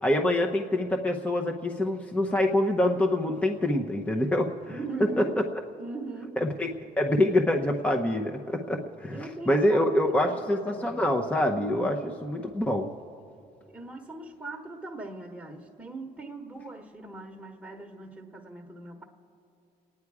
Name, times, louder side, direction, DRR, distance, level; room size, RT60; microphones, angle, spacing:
voice 1, 0.0-4.5 5.0-5.2 6.4-6.7 7.0-12.9, left 1 dB, 10° left, 2 dB, 0.8 m, -25 dB
voice 2, 4.7-5.4 5.8-6.4 9.1-11.0 13.7-19.0, right 3 dB, 5° right, 0 dB, 1.3 m, -40 dB
28.0 x 9.7 x 4.8 m, 2.7 s
cardioid pair, 110°, 17 cm